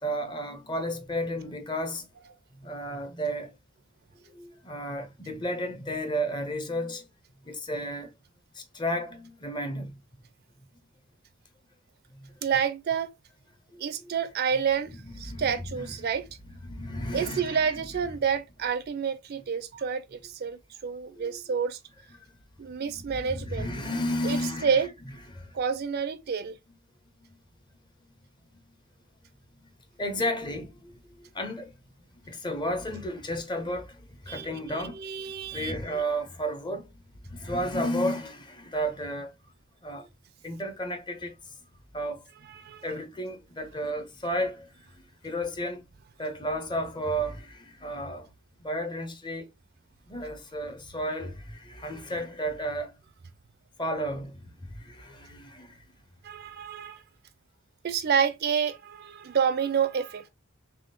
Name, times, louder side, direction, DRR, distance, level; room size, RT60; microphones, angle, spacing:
voice 1, 0.0-2.1 2.5-3.5 4.3-7.1 7.4-8.1 8.5-10.0 12.1-12.4 13.7-14.1 14.9-15.9 16.6-17.6 21.1-21.6 22.1-22.3 22.8-24.9 25.3-25.6 27.2-27.4 28.5-28.6 29.5-29.7 30.0-31.8 32.1-39.4 39.8-40.1 40.4-41.5 41.9-42.2 42.8-45.8 46.2-48.3 48.6-49.5 50.1-53.0 53.8-55.8, equal, 20° left, 0.6 m, -33 dB
voice 2, 12.4-13.1 13.8-16.3 17.1-21.8 22.6-23.7 24.2-24.9 25.5-26.6 34.3-35.7 42.5-42.8 56.2-57.0 57.8-60.3, right 7 dB, 50° right, 0.4 m, -29 dB
3.5 x 3.2 x 2.7 m
head